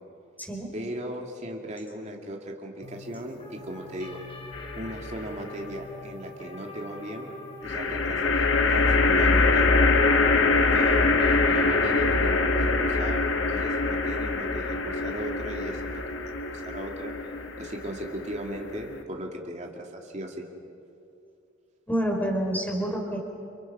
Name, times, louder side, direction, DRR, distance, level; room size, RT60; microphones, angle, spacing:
voice 1, 0.7-4.2 4.8-7.3 7.6-9.8 10.5-17.1 17.6-20.5, equal, 35° right, 1 dB, 2.5 m, -37 dB
sound 1, 2.8-12.3, left 2 dB, 30° left, 3.7 m, -43 dB
sound 2, 4.5-5.2 7.6-19.0, left 3 dB, 70° left, 1.8 m, -24 dB
voice 2, 21.9-23.2, equal, 10° left, 1 dB, 4.8 m, -28 dB
30.0 x 30.0 x 5.6 m, 2.6 s
head